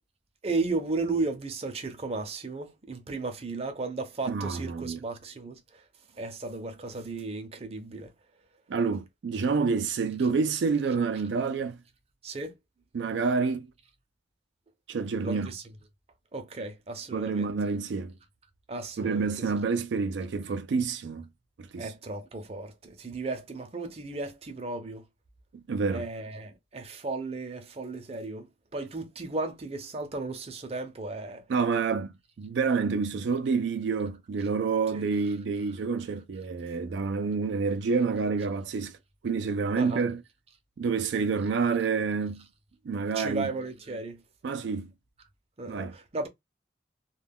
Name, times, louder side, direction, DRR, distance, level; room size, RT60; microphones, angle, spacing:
voice 1, 0.4-5.8 6.1-8.1 12.2-12.5 15.2-15.6 16.3-17.5 18.7-19.5 21.8-25.0 25.9-28.5 28.7-31.4 34.9-35.0 39.8-40.1 43.1-44.2 45.6-46.3, right 3 dB, 35° right, 0.6 m, -35 dB
voice 2, 4.3-5.0 8.7-11.8 12.9-13.7 14.9-15.5 17.1-18.1 19.0-21.3 21.6-21.9 25.7-26.1 31.5-39.0 39.2-40.2 40.8-42.5 42.8-43.5 44.4-44.9 45.7-46.0, right 5 dB, 80° right, 0.4 m, -28 dB
2.2 x 2.2 x 3.4 m
head